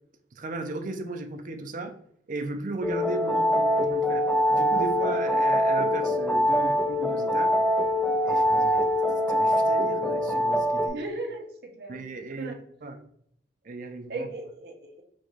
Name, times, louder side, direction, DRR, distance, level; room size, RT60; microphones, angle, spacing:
voice 1, 0.4-1.9 2.3-7.6 8.3-8.9 9.3-11.0 11.9-12.5 12.8-13.0 13.6-14.3, right 3 dB, 50° right, 6 dB, 0.6 m, -36 dB
sound 1, 2.8-10.9, equal, 5° left, 0.4 m, -24 dB
voice 2, 10.9-11.5 11.8-12.0 12.4-12.6 14.1-15.0, right 2 dB, 65° right, 2 dB, 1.0 m, -36 dB
4.7 x 2.3 x 4.0 m, 0.68 s
head